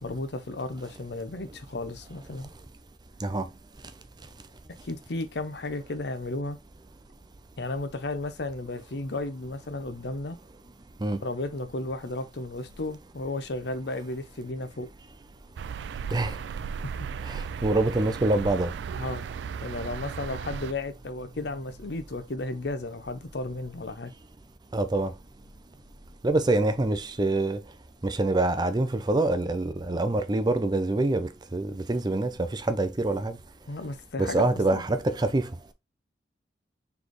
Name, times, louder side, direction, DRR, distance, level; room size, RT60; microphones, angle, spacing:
voice 1, 0.0-2.5 4.8-6.6 7.6-10.4 11.2-14.9 16.8-16.9 18.9-19.3 19.6-24.1 33.7-34.8, left 2 dB, 70° left, 0.7 m, -34 dB
sound 1, 15.6-20.7, right 6 dB, 80° right, 0.3 m, -36 dB
voice 2, 17.3-18.7 24.7-25.1 26.2-27.6 28.0-33.4 34.2-35.5, right 2 dB, 25° right, 0.5 m, -25 dB
4.2 x 3.4 x 3.0 m
head